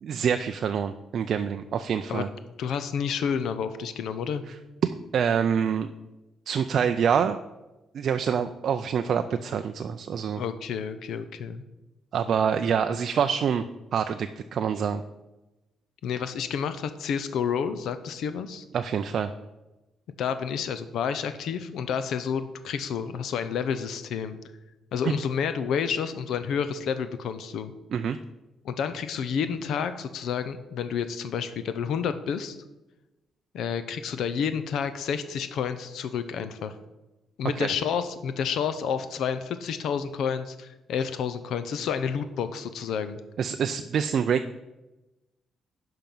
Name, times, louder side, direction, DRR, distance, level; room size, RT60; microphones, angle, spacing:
voice 1, 0.0-2.3 4.5-4.6 4.8-5.9 6.5-7.4 7.9-10.4 12.1-13.6 13.9-15.0 18.7-19.3 25.0-25.2 27.9-28.2 37.6-37.7 43.4-44.5, right 7 dB, 45° right, 8 dB, 0.4 m, -26 dB
voice 2, 2.6-4.4 10.4-11.6 16.0-18.7 20.2-24.4 24.9-27.7 28.6-32.6 33.5-36.7 37.4-43.2, left 7 dB, 65° left, 11 dB, 0.6 m, -30 dB
10.5 x 5.8 x 5.4 m, 1.0 s
cardioid pair, 180°, 0 cm